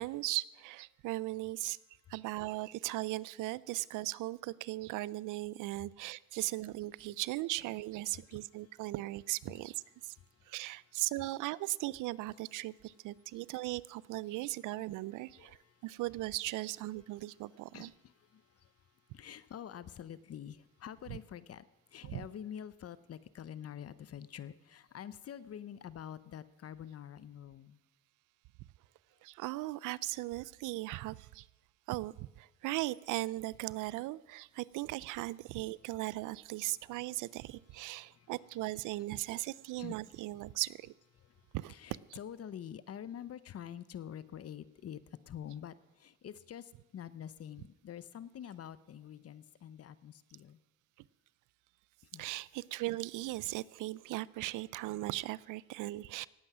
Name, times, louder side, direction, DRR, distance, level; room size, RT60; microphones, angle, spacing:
voice 1, 0.0-1.8 2.1-10.1 10.5-15.6 15.8-17.9 21.1-21.2 22.1-22.2 29.2-31.4 31.9-40.9 41.5-41.7 52.2-56.3, right 18 dB, 90° right, 0.5 m, -38 dB
voice 2, 8.1-8.4 10.1-10.6 13.3-13.4 15.3-16.0 17.4-18.7 19.1-27.8 37.7-38.3 39.3-39.4 39.8-40.0 41.2-45.0 45.3-50.6 52.1-52.3, left 9 dB, 50° left, 0.8 m, -47 dB
18.0 x 8.8 x 6.1 m
cardioid pair, 90°, 30 cm